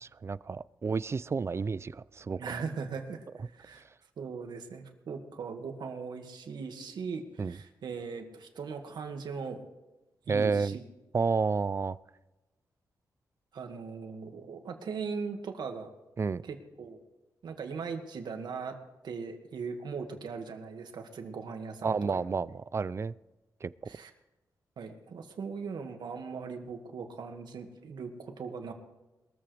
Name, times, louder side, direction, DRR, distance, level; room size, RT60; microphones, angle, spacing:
voice 1, 0.0-2.6 7.4-7.6 10.3-10.8 11.1-12.0 16.2-16.4 21.8-23.1 23.6-23.7, right 5 dB, 35° right, 0.4 m, -30 dB
voice 2, 2.4-3.8 4.2-9.6 10.3-10.9 13.5-15.9 16.4-17.0 17.4-18.8 19.0-22.2 23.9-24.1 24.8-28.7, right 5 dB, 75° right, 2.0 m, -39 dB
21.5 x 14.0 x 3.4 m
cardioid pair, 85°, 7 cm